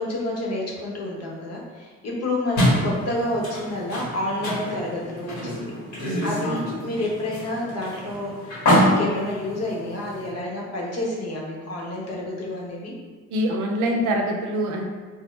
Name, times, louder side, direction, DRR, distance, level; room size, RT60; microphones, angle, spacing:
voice 1, 0.0-5.5 5.9-8.6 8.8-12.9, left 1 dB, 55° left, -3 dB, 1.0 m, -29 dB
sound 1, 2.6-10.3, equal, 70° left, 1.4 m, -26 dB
voice 2, 13.3-14.8, equal, 80° right, 2 dB, 0.6 m, -24 dB
3.5 x 2.0 x 3.1 m, 1.5 s
cardioid pair, 90°, 30 cm